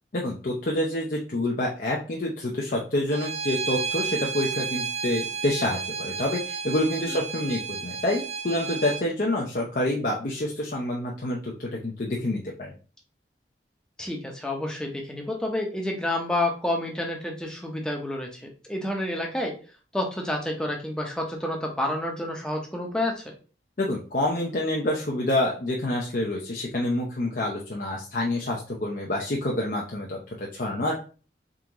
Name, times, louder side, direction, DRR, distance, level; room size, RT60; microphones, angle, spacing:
voice 1, 0.1-12.7 23.8-31.0, left 1 dB, 50° left, -2 dB, 0.6 m, -27 dB
Bowed string instrument, 3.1-9.0, right 5 dB, 35° right, 0.4 m, -32 dB
voice 2, 14.0-19.5 19.9-23.4, left 1 dB, 5° left, 0 dB, 0.7 m, -29 dB
3.7 x 3.6 x 2.9 m, 0.37 s
head